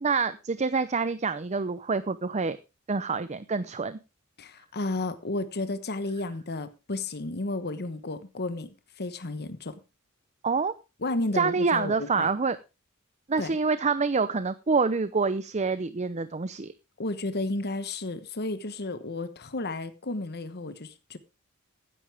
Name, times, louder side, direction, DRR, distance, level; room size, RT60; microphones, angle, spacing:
voice 1, 0.0-2.6 2.9-4.0 10.4-10.7 11.3-12.6 13.3-16.7, right 4 dB, 30° right, 0.6 m, -27 dB
voice 2, 4.4-9.8 11.0-12.3 13.4-13.6 17.0-21.2, left 2 dB, 50° left, 1.2 m, -32 dB
15.5 x 10.5 x 3.5 m
head